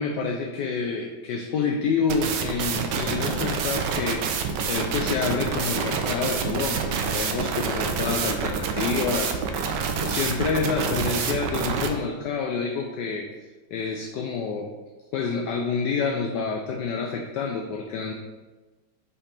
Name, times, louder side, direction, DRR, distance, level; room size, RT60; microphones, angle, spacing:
voice 1, 0.0-13.3 13.7-14.7 15.1-18.1, left 5 dB, 70° left, 1 dB, 1.1 m, -28 dB
sound 1, 2.1-11.9, right 6 dB, 70° right, 1.2 m, -27 dB
5.6 x 5.3 x 4.2 m, 1.2 s
omnidirectional pair, 2.2 m